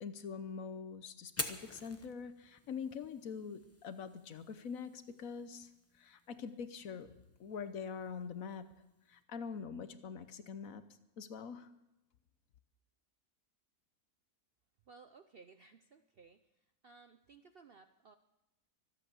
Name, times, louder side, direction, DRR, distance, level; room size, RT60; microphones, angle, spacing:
voice 1, 0.0-8.7 9.1-10.8 11.2-11.7, left 6 dB, 65° left, 11 dB, 1.2 m, -44 dB
Fire, 1.2-9.2, left 1 dB, 10° left, 0.8 m, -49 dB
voice 2, 14.9-18.1, right 4 dB, 60° right, 8 dB, 0.6 m, -59 dB
24.5 x 8.3 x 6.8 m, 0.92 s
omnidirectional pair, 1.6 m